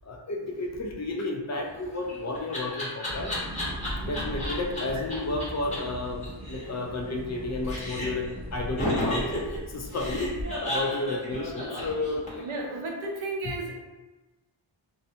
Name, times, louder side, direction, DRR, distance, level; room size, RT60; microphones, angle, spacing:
voice 1, 0.0-3.3 3.8-12.7, left 2 dB, 35° left, 2 dB, 0.4 m, -32 dB
Laughter, 1.7-4.8 5.1-5.2 5.4-5.5 5.7-5.8 6.1-7.4 7.6-8.3 8.8-12.5, equal, 15° left, 1.0 m, -33 dB
sound 1, 3.1-10.4, equal, 35° right, 0.8 m, -39 dB
voice 2, 3.9-4.3 4.9-5.5 10.5-11.1 11.9-12.1 12.3-13.7, right 2 dB, 75° right, 0 dB, 0.6 m, -36 dB
2.6 x 2.1 x 2.7 m, 1.2 s
wide cardioid pair, 70°, 49 cm